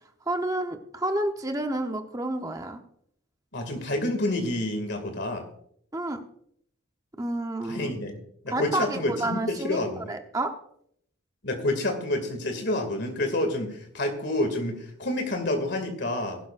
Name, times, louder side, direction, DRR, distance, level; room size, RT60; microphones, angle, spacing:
voice 1, 0.3-2.8 5.9-6.2 7.2-7.9 8.5-10.5, right 1 dB, 20° right, 5 dB, 1.0 m, -30 dB
voice 2, 3.5-5.4 7.7-8.1 8.4-10.1 11.4-16.4, left 1 dB, 60° left, 5 dB, 2.4 m, -28 dB
20.0 x 11.5 x 2.6 m, 0.68 s
head